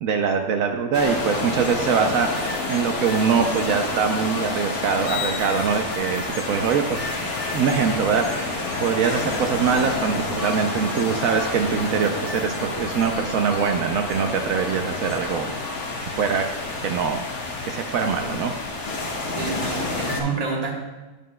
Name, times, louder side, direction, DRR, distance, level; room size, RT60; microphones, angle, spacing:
voice 1, 0.0-7.1 7.5-15.5 16.2-16.4 16.8-17.3 17.7-18.5, right 6 dB, 75° right, 4 dB, 1.0 m, -23 dB
sound 1, 0.9-20.2, left 3 dB, 85° left, 1.7 m, -29 dB
sound 2, 4.9-18.4, left 4 dB, 60° left, 0.8 m, -42 dB
voice 2, 19.3-20.7, right 4 dB, 30° right, -1 dB, 1.3 m, -28 dB
10.0 x 9.6 x 2.2 m, 1.2 s
omnidirectional pair, 1.5 m